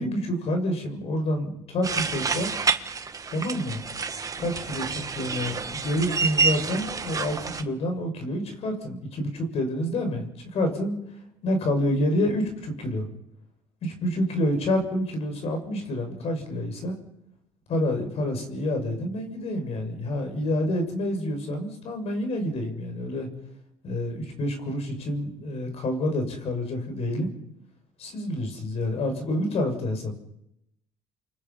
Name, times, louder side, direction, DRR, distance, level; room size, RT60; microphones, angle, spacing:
voice 1, 0.0-2.6 3.3-3.8 4.4-10.9 11.4-13.1 13.8-16.9 17.7-23.3 23.8-27.3 28.0-30.1, left 1 dB, 55° left, 5 dB, 6.7 m, -28 dB
sound 1, 1.8-7.6, right 5 dB, 30° right, 1.5 m, -28 dB
29.5 x 24.5 x 5.8 m, 0.83 s
cardioid pair, 105°, 12 cm